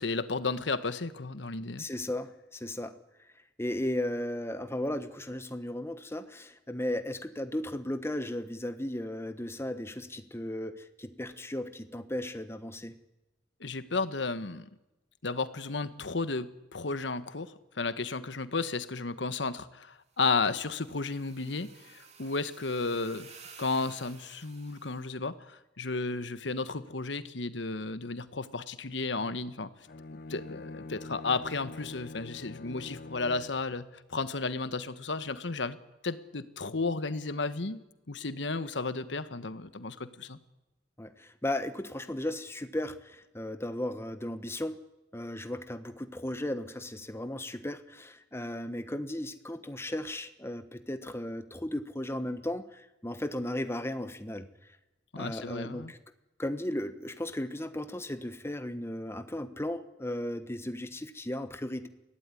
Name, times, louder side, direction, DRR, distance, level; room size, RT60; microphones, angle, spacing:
voice 1, 0.0-1.8 13.6-14.7 15.2-23.3 23.6-29.7 30.3-35.8 36.0-37.8 38.1-40.4 55.1-55.9, left 3 dB, 75° left, 13 dB, 1.2 m, -33 dB
voice 2, 1.8-3.0 3.6-13.0 41.0-44.8 45.1-54.5 55.1-56.0 56.4-61.9, left 1 dB, 15° left, 10 dB, 1.2 m, -35 dB
sound 1, 20.1-25.1, right 5 dB, 35° right, 2.6 m, -54 dB
Bowed string instrument, 29.8-33.7, left 2 dB, 55° left, 0.7 m, -45 dB
23.0 x 16.5 x 9.8 m, 1.0 s
head